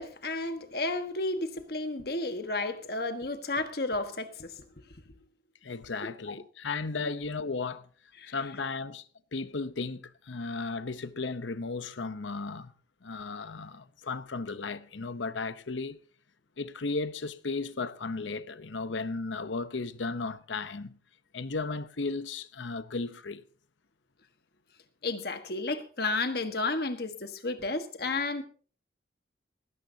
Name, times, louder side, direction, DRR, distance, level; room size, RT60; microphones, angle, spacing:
voice 1, 0.0-4.6 6.0-6.3 8.2-8.3 25.0-28.4, left 2 dB, 55° left, 1.4 m, -32 dB
voice 2, 5.6-7.9 8.3-12.7 13.0-16.0 16.6-21.0 21.3-23.4, left 3 dB, 90° left, 0.8 m, -35 dB
18.5 x 17.0 x 2.8 m
head